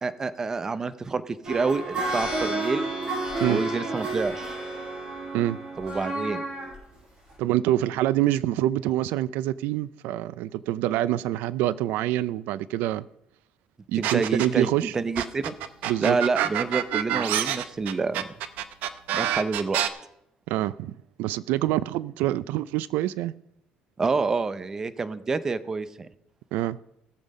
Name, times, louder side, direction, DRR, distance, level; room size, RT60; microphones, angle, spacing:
voice 1, 0.0-2.9 3.5-4.6 5.8-6.4 14.0-15.5 16.0-18.3 19.1-19.8 24.0-26.1, right 4 dB, 20° right, 0.5 m, -28 dB
sound 1, 1.4-6.7 7.3-7.4, right 2 dB, 35° right, 5.9 m, -31 dB
voice 2, 7.4-13.1 13.9-15.0 15.9-16.2 20.5-23.3 26.5-26.8, right 14 dB, 85° right, 0.4 m, -26 dB
sound 2, 14.0-14.7 15.2-19.9, right 11 dB, 65° right, 0.8 m, -27 dB
18.0 x 7.3 x 5.2 m
cardioid pair, 170°, 3 cm